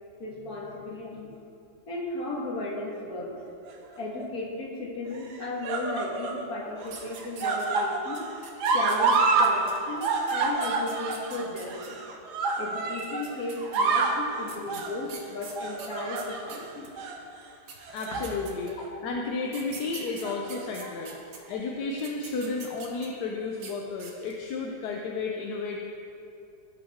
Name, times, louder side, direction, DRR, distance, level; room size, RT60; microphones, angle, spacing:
voice 1, 0.2-1.3 1.9-3.4 4.0-8.2 8.7-12.0 12.6-16.9 18.9-19.0 20.8-20.9, left 2 dB, 50° left, -3 dB, 2.1 m, -35 dB
sound 1, 3.7-4.2 5.1-6.4 6.8-9.5 9.8-13.3 13.6-14.2 14.7-15.0 15.6-16.6 17.0-17.2 17.8-18.3 18.7-18.9 20.0-20.6 21.5-21.6, right 4 dB, 65° right, 1.4 m, -28 dB
sound 2, 6.8-7.9 8.1-11.9 12.9-13.8 14.5-16.9 17.4-17.5 17.7-18.9 19.5-21.4 21.9-23.2 23.5-23.7 24.0-24.4, right 6 dB, 85° right, 1.8 m, -45 dB
voice 2, 17.9-21.2 21.5-25.8, left 3 dB, 65° left, 1 dB, 1.2 m, -32 dB
17.0 x 6.2 x 3.6 m, 2.6 s
omnidirectional pair, 2.0 m